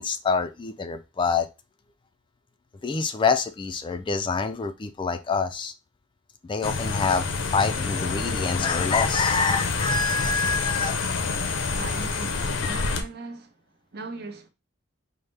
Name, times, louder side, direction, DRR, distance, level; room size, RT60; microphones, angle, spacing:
voice 1, 0.0-1.5 2.8-5.7 6.4-7.3 7.5-11.0, left 5 dB, 25° left, 0.3 m, -26 dB
sound 1, 6.6-13.0, left 4 dB, 85° left, 0.7 m, -27 dB
voice 2, 11.8-14.5, right 3 dB, 55° right, 0.8 m, -39 dB
5.5 x 2.1 x 3.2 m
head